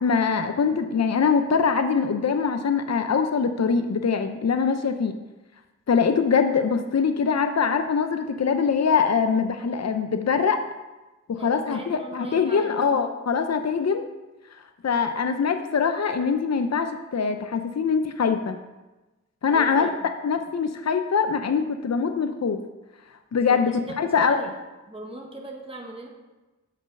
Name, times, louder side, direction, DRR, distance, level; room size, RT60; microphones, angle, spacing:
voice 1, 0.0-5.2 5.9-10.6 11.3-14.0 14.8-18.6 19.4-19.9 20.2-22.6 23.3-24.5, left 5 dB, 60° left, 7 dB, 0.5 m, -23 dB
voice 2, 11.4-12.7 19.5-20.0 23.5-24.4 24.9-26.1, right 1 dB, 20° right, 0 dB, 1.3 m, -39 dB
7.7 x 6.4 x 5.3 m, 1.1 s
wide cardioid pair, 65°, 30 cm